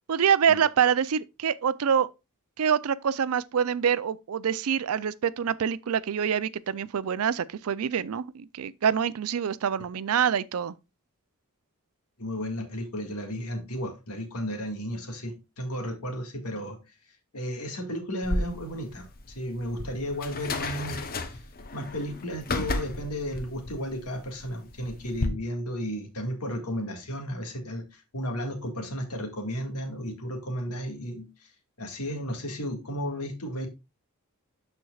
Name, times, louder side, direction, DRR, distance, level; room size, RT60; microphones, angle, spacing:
voice 1, 0.1-2.1 2.6-10.8, right 7 dB, 70° right, 0.4 m, -26 dB
voice 2, 12.2-16.8 17.3-21.0 21.3-21.4 21.7-31.3 31.8-33.7, equal, 85° left, 1.8 m, -33 dB
sound 1, 18.2-25.3, left 2 dB, 40° left, 0.8 m, -34 dB
12.5 x 4.5 x 2.4 m
head